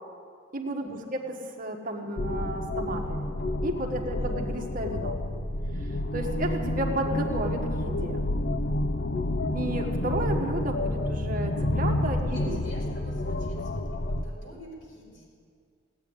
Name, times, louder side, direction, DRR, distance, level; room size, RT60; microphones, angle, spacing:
voice 1, 0.5-3.3 3.6-5.2 5.7-8.2 9.5-12.6, right 1 dB, 45° right, 2 dB, 1.4 m, -33 dB
sound 1, 2.2-14.2, left 1 dB, 55° left, 0.7 m, -29 dB
voice 2, 12.2-15.3, equal, 70° left, -3 dB, 5.2 m, -48 dB
16.0 x 9.1 x 9.8 m, 2.2 s
head